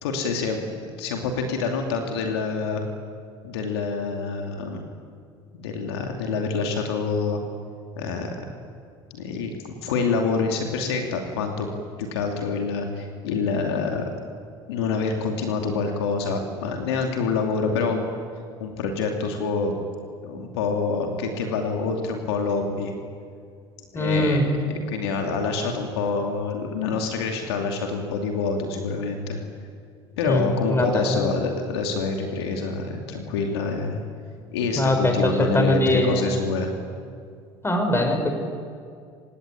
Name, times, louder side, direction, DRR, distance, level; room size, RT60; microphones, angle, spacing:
voice 1, 0.0-2.8 3.4-4.8 5.6-7.4 8.0-8.5 9.1-11.7 12.0-14.1 14.7-18.1 18.6-19.7 20.2-23.0 23.9-29.4 30.2-34.0 34.5-36.7, left 4 dB, 80° left, 3 dB, 2.6 m, -26 dB
voice 2, 23.9-24.4 30.3-30.4 30.7-31.2 34.8-36.2 37.6-38.3, left 1 dB, 20° left, 5 dB, 6.0 m, -22 dB
24.5 x 18.5 x 9.9 m, 2.2 s
hypercardioid pair, 65°, 13 cm